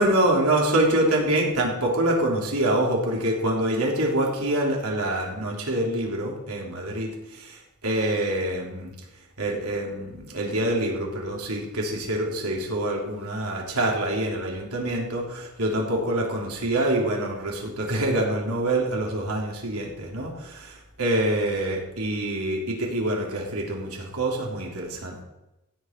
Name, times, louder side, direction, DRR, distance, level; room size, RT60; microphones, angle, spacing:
voice 1, 0.0-8.9 9.4-25.2, right 1 dB, 75° right, -1 dB, 3.4 m, -26 dB
15.5 x 8.4 x 4.6 m, 0.95 s
head